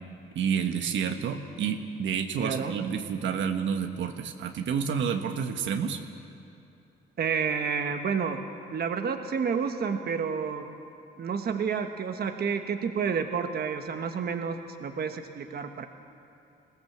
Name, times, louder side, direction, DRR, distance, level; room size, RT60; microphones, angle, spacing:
voice 1, 0.3-6.0, right 7 dB, 70° right, 5 dB, 1.4 m, -29 dB
voice 2, 2.3-2.7 7.2-8.4 8.7-10.7 11.2-15.9, right 6 dB, 55° right, 5 dB, 1.4 m, -30 dB
21.0 x 17.0 x 7.5 m, 2.7 s
cardioid pair, 90°, 20 cm